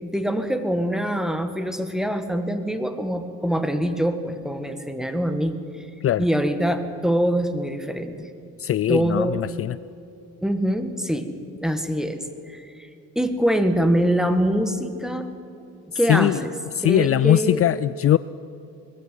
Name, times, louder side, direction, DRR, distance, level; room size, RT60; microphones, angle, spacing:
voice 1, 0.0-5.6 6.2-8.3 8.9-9.5 10.4-11.3 11.6-12.9 13.2-15.3 16.0-16.5 16.8-17.6, equal, ahead, 8 dB, 1.9 m, -24 dB
voice 2, 8.6-9.8 16.1-16.4 16.7-18.2, left 12 dB, 50° left, 17 dB, 0.5 m, -20 dB
20.5 x 15.0 x 9.4 m, 2.6 s
cardioid pair, 90°, 30 cm